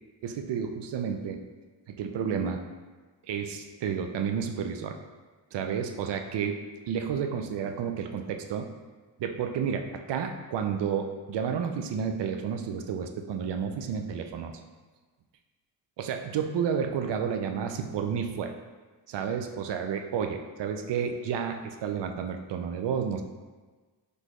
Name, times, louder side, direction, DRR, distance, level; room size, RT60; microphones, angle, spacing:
voice 1, 0.2-1.4 1.9-2.6 3.3-5.0 5.5-8.7 9.2-14.5 16.0-18.5 19.1-23.2, right 7 dB, 65° right, 5 dB, 0.6 m, -31 dB
4.1 x 3.4 x 3.1 m, 1.4 s
cardioid pair, 60°, 46 cm